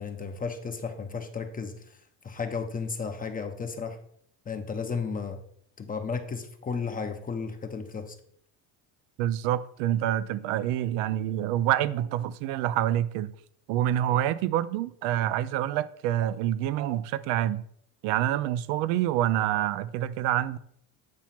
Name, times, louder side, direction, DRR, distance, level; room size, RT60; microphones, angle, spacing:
voice 1, 0.0-2.0 2.2-4.0 4.5-5.4 5.8-8.2, left 5 dB, 20° left, 0.7 m, -34 dB
voice 2, 9.2-13.3 13.7-17.6 18.0-20.6, right 12 dB, 80° right, 0.5 m, -27 dB
8.8 x 3.0 x 5.7 m
cardioid pair, 115°, 40 cm